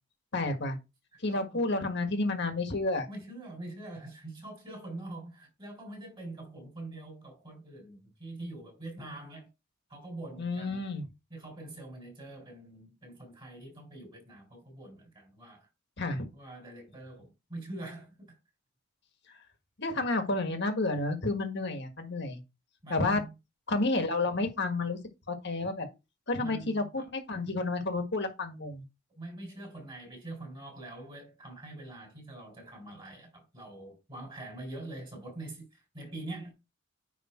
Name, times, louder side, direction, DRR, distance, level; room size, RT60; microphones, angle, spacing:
voice 1, 0.3-0.8 1.2-3.1 10.4-11.0 16.0-16.3 19.8-22.4 22.9-23.2 23.7-25.0 25.3-25.9 26.3-28.8, left 2 dB, 55° left, 1.7 m, -30 dB
voice 2, 1.1-1.6 3.1-9.5 9.9-10.9 11.3-15.7 16.3-18.4 22.8-23.3 26.4-27.1 29.2-36.5, right 2 dB, 25° right, 3.9 m, -44 dB
9.8 x 3.5 x 4.4 m
head